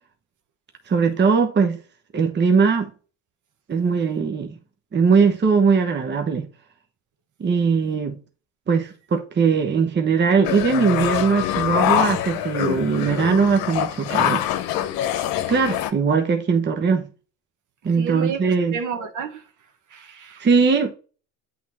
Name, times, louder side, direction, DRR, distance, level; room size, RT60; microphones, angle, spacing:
voice 1, 0.9-1.8 2.1-2.9 3.7-4.6 4.9-6.5 7.4-8.2 8.7-14.4 15.5-17.1 17.8-18.8 20.4-20.9, right 5 dB, 30° right, 1.0 m, -20 dB
sound 1, 10.4-15.9, left 12 dB, 70° left, 0.9 m, -24 dB
voice 2, 18.0-19.4 19.9-20.4, right 6 dB, 55° right, 1.5 m, -31 dB
8.3 x 3.7 x 4.2 m
supercardioid pair, 75°, 37 cm